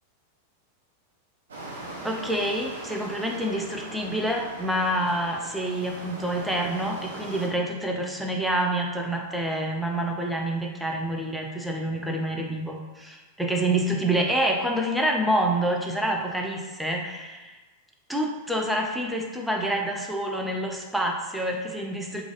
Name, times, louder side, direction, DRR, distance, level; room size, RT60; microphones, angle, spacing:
sound 1, 1.5-7.5, right 1 dB, 70° right, 0.5 m, -40 dB
voice 1, 2.0-17.5 18.1-22.2, right 1 dB, ahead, 0 dB, 0.3 m, -27 dB
2.4 x 2.2 x 2.8 m, 1.2 s
figure-of-eight pair, 90°, 0 cm